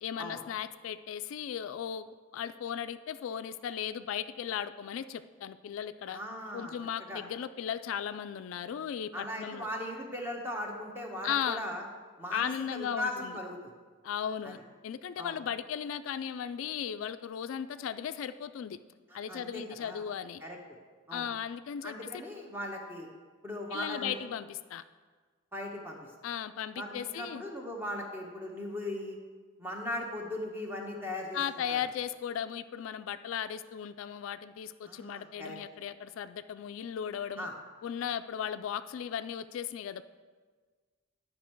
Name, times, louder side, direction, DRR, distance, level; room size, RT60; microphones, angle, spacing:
voice 1, 0.0-2.1 2.3-6.2 6.5-9.7 11.2-11.7 12.3-13.3 14.0-14.6 14.8-18.8 19.1-20.4 21.1-21.9 23.7-24.8 26.2-27.4 31.3-37.5 37.8-40.0, left 8 dB, 75° left, 12 dB, 0.3 m, -36 dB
voice 2, 6.1-6.7 7.1-7.2 9.1-11.8 12.2-13.7 14.4-14.5 15.2-15.4 19.1-20.0 20.4-20.6 21.1-21.3 21.8-23.1 23.4-24.2 25.5-26.0 26.8-29.2 29.6-31.4 31.7-31.8 34.8-35.6 37.4-37.5, left 1 dB, 10° right, 0 dB, 1.0 m, -38 dB
10.0 x 5.4 x 4.5 m, 1.5 s
head